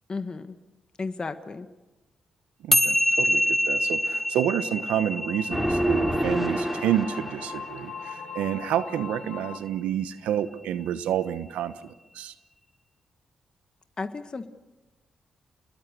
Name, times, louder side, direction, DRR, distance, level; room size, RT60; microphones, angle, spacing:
voice 1, 0.1-0.6 1.0-1.7 14.0-14.5, left 4 dB, 40° left, 9 dB, 1.6 m, -33 dB
voice 2, 2.6-12.3, right 10 dB, 80° right, 13 dB, 1.0 m, -29 dB
sound 1, 2.7-9.3, left 1 dB, 10° left, 1.8 m, -27 dB
sound 2, 3.9-9.6, left 8 dB, 80° left, 2.6 m, -42 dB
sound 3, 5.5-7.9, right 1 dB, 10° right, 4.8 m, -27 dB
29.0 x 21.5 x 6.8 m, 1.1 s
hypercardioid pair, 45°, 2 cm